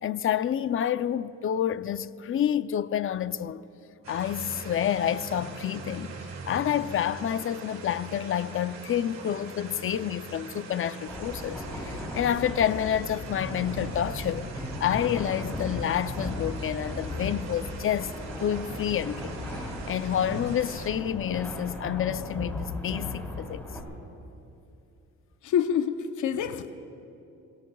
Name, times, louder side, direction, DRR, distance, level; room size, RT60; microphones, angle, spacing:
voice 1, 0.0-3.7 4.1-6.1 6.5-23.6, left 10 dB, 45° left, 0.5 m, -29 dB
sound 1, 4.0-20.9, right 4 dB, 60° right, 2.4 m, -43 dB
sound 2, 11.1-23.8, left 1 dB, 5° left, 3.3 m, -36 dB
voice 2, 25.4-26.8, left 8 dB, 75° left, 0.8 m, -27 dB
26.0 x 21.5 x 2.3 m
cardioid pair, 90°, 30 cm